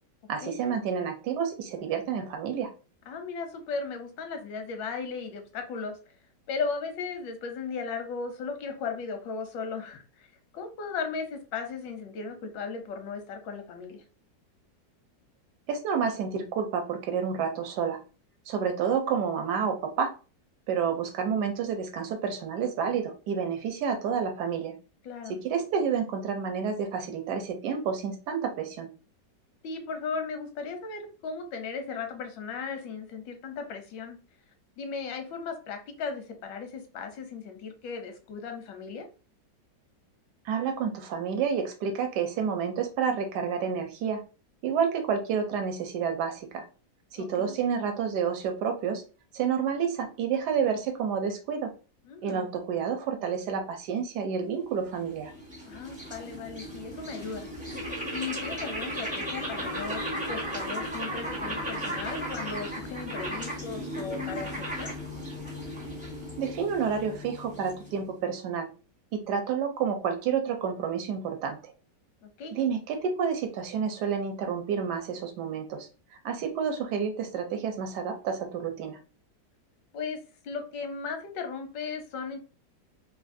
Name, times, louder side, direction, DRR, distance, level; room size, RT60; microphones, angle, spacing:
voice 1, 0.3-2.7 15.7-18.0 18.5-20.1 20.7-24.7 25.3-28.9 40.4-44.2 44.6-46.6 47.1-49.0 49.3-51.7 52.2-55.3 66.4-68.7 69.1-71.7 72.5-75.9 76.2-79.0, right 6 dB, 75° right, 5 dB, 1.1 m, -29 dB
voice 2, 3.1-6.0 6.5-10.3 10.5-14.0 25.0-25.4 29.6-34.2 34.8-39.1 47.2-47.6 52.1-52.5 55.6-57.5 58.1-60.0 60.3-64.9 72.2-72.6 79.9-80.2 80.4-82.4, left 5 dB, 85° left, 6 dB, 1.3 m, -36 dB
sound 1, 54.7-68.1, equal, 10° right, 0.4 m, -36 dB
3.3 x 2.4 x 2.5 m, 0.34 s
omnidirectional pair, 1.9 m